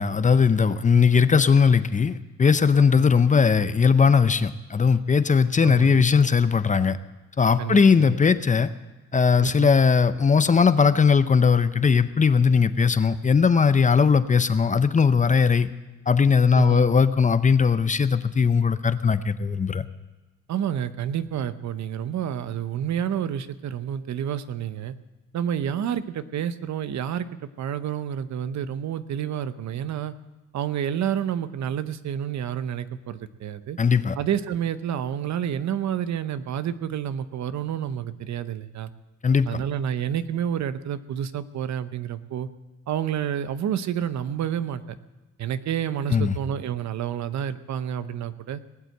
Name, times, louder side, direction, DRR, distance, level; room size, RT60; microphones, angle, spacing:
voice 1, 0.0-7.0 7.4-8.7 9.1-15.7 16.1-19.8 33.8-34.2 39.2-39.5 46.1-46.4, left 5 dB, 25° left, 13 dB, 0.6 m, -19 dB
voice 2, 0.9-1.2 3.0-3.1 5.6-6.0 7.6-8.2 9.4-9.7 16.5-16.9 20.5-24.9 25.3-27.3 27.6-30.1 30.5-33.8 34.2-38.9 39.5-42.5 42.9-44.8 45.4-48.6, right 9 dB, 65° right, 12 dB, 0.9 m, -29 dB
19.5 x 8.2 x 7.8 m, 1.2 s
cardioid pair, 90°, 30 cm